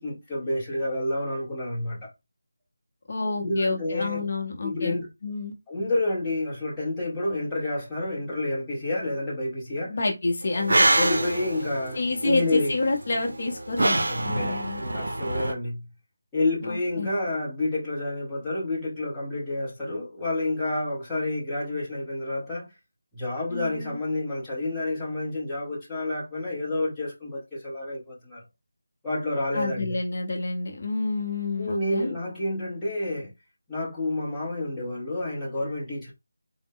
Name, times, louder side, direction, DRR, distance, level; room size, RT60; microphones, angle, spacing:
voice 1, 0.0-2.1 3.4-4.3 4.6-5.1 5.7-10.0 11.0-12.7 14.1-15.9 16.3-22.7 23.1-28.4 29.0-30.0 31.6-33.3 33.7-36.1, left 2 dB, 5° left, 0.8 m, -29 dB
voice 2, 3.1-5.0 5.2-5.5 9.9-10.9 11.9-14.8 16.6-17.1 23.5-24.0 29.5-32.2, left 3 dB, 35° left, 0.7 m, -29 dB
sound 1, 10.5-15.5, right 2 dB, 65° right, 0.6 m, -26 dB
3.9 x 2.0 x 3.6 m
figure-of-eight pair, 175°, 0 cm